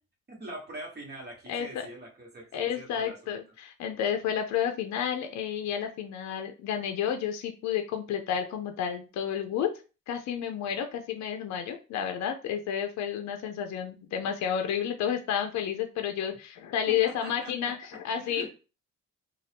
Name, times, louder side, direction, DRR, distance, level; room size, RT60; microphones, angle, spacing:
voice 1, 0.3-3.4 17.0-17.7 18.1-18.5, right 1 dB, 35° right, -1 dB, 1.3 m, -43 dB
voice 2, 1.5-1.9 2.5-9.7 10.1-18.5, left 9 dB, 65° left, 5 dB, 0.5 m, -31 dB
2.6 x 2.3 x 3.4 m, 0.33 s
cardioid pair, 90°, 30 cm